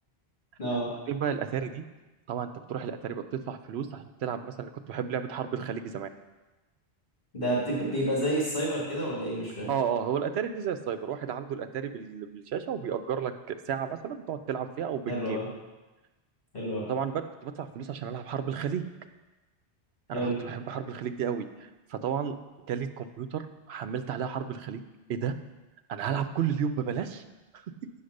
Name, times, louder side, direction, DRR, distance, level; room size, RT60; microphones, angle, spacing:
voice 1, 1.1-1.8 2.3-6.1 9.7-15.4 16.9-18.8 20.1-22.3 22.7-24.8 25.1-25.3 25.9-27.2 27.5-27.6, right 8 dB, 85° right, 9 dB, 0.9 m, -32 dB
voice 2, 7.3-9.7 15.1-15.5 16.5-16.9 20.1-20.4, right 1 dB, 55° left, -6 dB, 2.4 m, -29 dB
8.1 x 5.7 x 6.4 m, 1.1 s
omnidirectional pair, 1.1 m